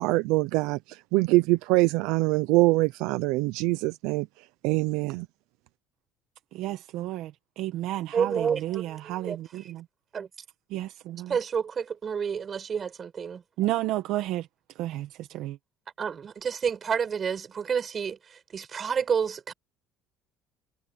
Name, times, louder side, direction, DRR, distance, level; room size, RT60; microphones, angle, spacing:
voice 1, 0.0-4.3 4.6-5.3, right 21 dB, 80° right, 0.7 m, -24 dB
voice 2, 6.5-9.8 10.7-11.4 13.6-14.5 14.7-15.6, right 15 dB, 65° right, 1.4 m, -32 dB
voice 3, 8.1-9.4 10.1-10.3 11.3-13.4 16.0-19.5, right 7 dB, 30° right, 7.8 m, -29 dB
cardioid pair, 150°, 0 cm